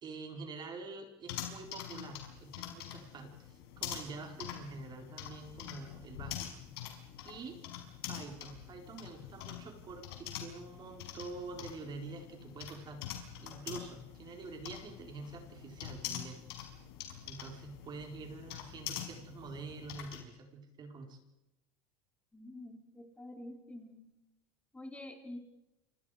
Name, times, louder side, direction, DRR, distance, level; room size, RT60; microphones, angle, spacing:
voice 1, 0.0-6.5 7.2-7.6 8.1-16.4 17.3-21.2, right 3 dB, 35° right, 3 dB, 4.3 m, -46 dB
sound 1, 1.3-20.2, left 11 dB, 90° left, 5.4 m, -45 dB
voice 2, 22.3-24.0 24.7-25.4, left 1 dB, 10° left, 3 dB, 4.3 m, -47 dB
29.5 x 26.0 x 5.0 m, 0.93 s
supercardioid pair, 130°, 13 cm